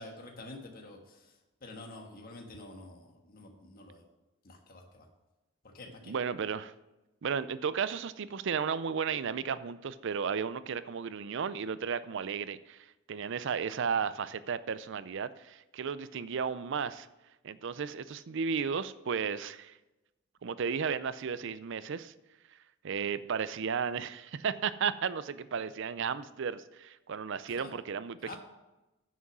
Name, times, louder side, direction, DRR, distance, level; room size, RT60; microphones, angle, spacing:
voice 1, 0.0-4.0 4.4-5.1 5.7-6.1 27.5-27.7 28.2-28.4, left 2 dB, 45° left, 2 dB, 1.5 m, -48 dB
voice 2, 6.1-6.7 7.2-12.8 13.1-17.1 17.4-19.8 20.4-22.1 22.8-28.4, right 6 dB, 60° right, 15 dB, 0.5 m, -34 dB
9.5 x 6.2 x 6.1 m, 1.0 s
head